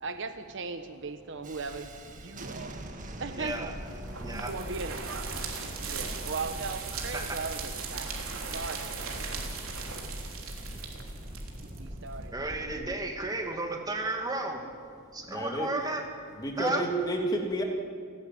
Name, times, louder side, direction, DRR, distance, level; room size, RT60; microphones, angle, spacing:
voice 1, 0.0-2.8 3.2-3.6 4.2-5.3 5.8-8.9 11.7-12.5, right 4 dB, 60° right, 9 dB, 1.1 m, -38 dB
Thunderstorm, 1.4-13.0, equal, 40° right, 1.7 m, -42 dB
voice 2, 3.4-3.7 4.2-4.5 6.9-7.4 9.9-10.0 12.3-14.6 15.1-16.1 16.6-16.9, right 2 dB, 20° right, 3 dB, 2.4 m, -33 dB
sound 1, 3.4-12.2, right 5 dB, 85° right, 3.3 m, -39 dB
voice 3, 15.3-15.7 16.4-17.6, right 1 dB, 20° left, 2 dB, 2.6 m, -30 dB
29.0 x 11.5 x 9.4 m, 2.2 s
head